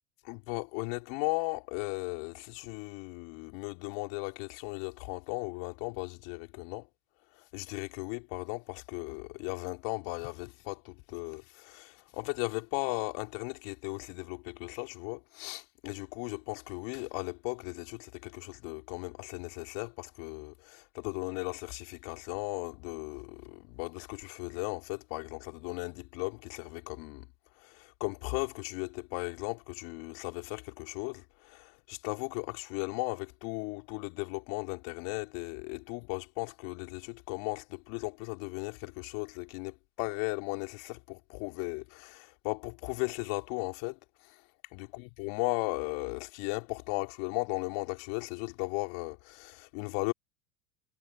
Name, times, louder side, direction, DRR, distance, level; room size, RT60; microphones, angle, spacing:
voice 1, 0.2-6.9 7.3-27.3 27.6-44.4 44.7-50.1, left 31 dB, 60° left, 3.9 m, -37 dB
hypercardioid pair, 115°, 46 cm